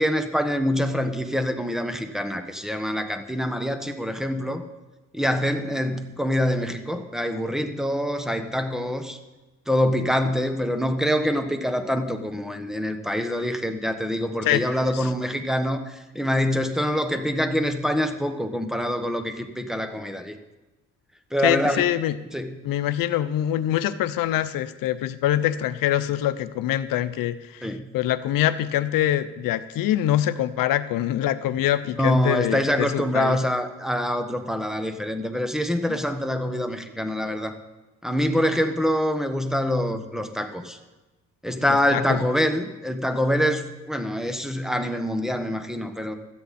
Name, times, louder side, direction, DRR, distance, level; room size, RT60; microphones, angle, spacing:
voice 1, 0.0-4.6 5.1-9.2 9.7-20.4 21.3-21.8 22.3-22.5 27.6-27.9 32.0-37.5 38.0-40.8 41.4-46.1, equal, ahead, 5 dB, 1.3 m, -25 dB
voice 2, 21.4-22.1 22.6-33.4 35.9-36.0 41.7-42.2, left 12 dB, 85° left, 13 dB, 0.7 m, -24 dB
16.5 x 13.0 x 4.3 m, 1.1 s
cardioid pair, 105°, 33 cm